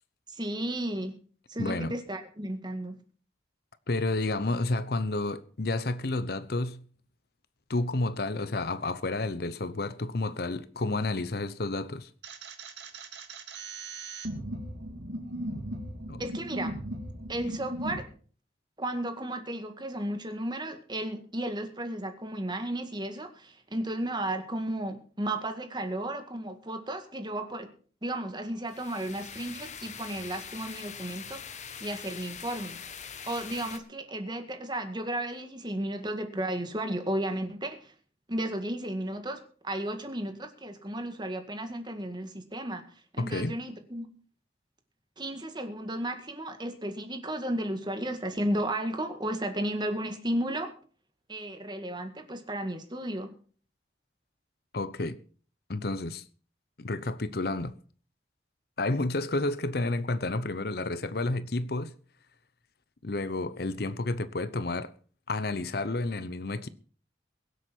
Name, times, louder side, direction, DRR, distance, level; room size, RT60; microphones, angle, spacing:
voice 1, 0.3-1.1 1.5-3.0 16.2-16.7 17.3-18.1 18.8-27.7 28.0-31.4 31.8-32.8 33.3-37.9 38.3-42.8 43.1-44.1 45.2-50.7 51.3-53.3, right 1 dB, 25° right, 1.9 m, -34 dB
voice 2, 1.6-1.9 3.9-6.8 7.7-12.1 16.1-16.2 43.2-43.6 54.7-55.2 55.7-56.2 56.8-57.7 58.8-61.9 63.0-64.9 65.3-66.7, left 2 dB, 60° left, 0.8 m, -30 dB
sound 1, 12.2-18.0, right 1 dB, 80° right, 2.3 m, -38 dB
sound 2, 28.7-33.8, left 7 dB, 40° left, 1.4 m, -43 dB
23.0 x 8.0 x 4.5 m
head